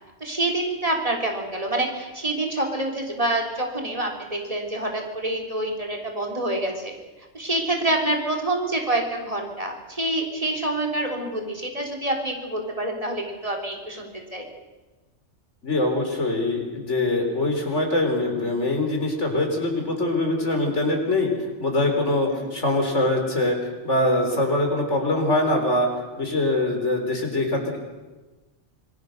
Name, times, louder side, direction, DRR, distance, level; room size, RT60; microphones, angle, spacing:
voice 1, 0.2-6.9 7.3-14.4 22.3-22.5, right 1 dB, 30° right, 1 dB, 3.7 m, -27 dB
voice 2, 15.6-21.3 21.6-23.6 23.8-25.9 26.2-27.8, left 2 dB, 85° left, 2 dB, 4.4 m, -23 dB
26.0 x 20.5 x 6.6 m, 1.2 s
omnidirectional pair, 1.2 m